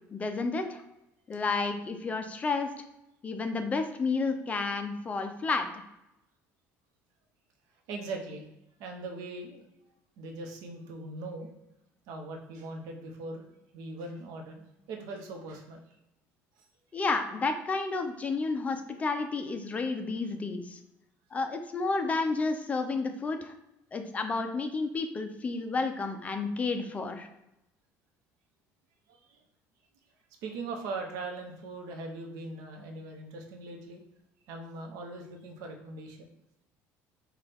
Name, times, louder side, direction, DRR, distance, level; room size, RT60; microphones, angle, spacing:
voice 1, 0.1-0.8 1.3-2.7 3.2-5.7 16.9-20.8 21.3-23.5 23.9-27.3, left 3 dB, 25° left, 6 dB, 0.5 m, -31 dB
voice 2, 7.9-8.5 8.8-9.6 10.2-11.5 12.1-13.4 13.7-15.8 16.6-16.7 29.1-29.4 30.4-34.0 34.5-36.2, right 3 dB, 75° right, 3 dB, 0.9 m, -40 dB
5.8 x 2.4 x 3.4 m, 0.88 s
cardioid pair, 135°, 6 cm